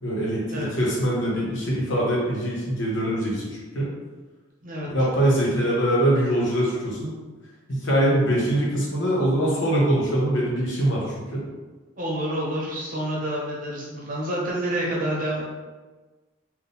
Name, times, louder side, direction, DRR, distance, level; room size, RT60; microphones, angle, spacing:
voice 1, 0.0-3.4 3.7-3.9 4.9-7.1 7.7-11.0 11.3-11.4, right 1 dB, 60° left, -5 dB, 1.2 m, -23 dB
voice 2, 12.0-15.4, right 1 dB, 40° right, -4 dB, 0.9 m, -28 dB
3.7 x 2.5 x 4.1 m, 1.3 s
head